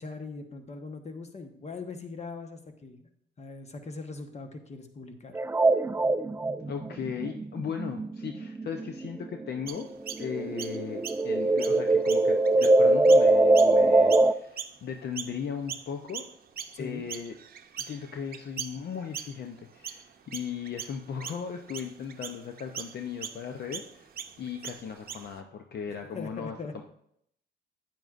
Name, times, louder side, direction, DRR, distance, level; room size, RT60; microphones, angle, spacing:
voice 1, 0.0-3.0 3.4-5.3 16.7-17.0 26.1-26.8, left 3 dB, 35° left, 6 dB, 1.2 m, -41 dB
sound 1, 5.4-9.5 9.8-14.3, right 2 dB, 15° right, 0.3 m, -22 dB
voice 2, 6.7-9.9 10.2-16.3 16.8-17.3 17.8-24.1 24.4-26.8, left 7 dB, 55° left, 5 dB, 0.7 m, -37 dB
Chirp tweet, 9.7-15.4 15.7-25.4, right 8 dB, 50° right, 0.7 m, -41 dB
9.4 x 9.0 x 2.5 m, 0.72 s
cardioid pair, 90°, 20 cm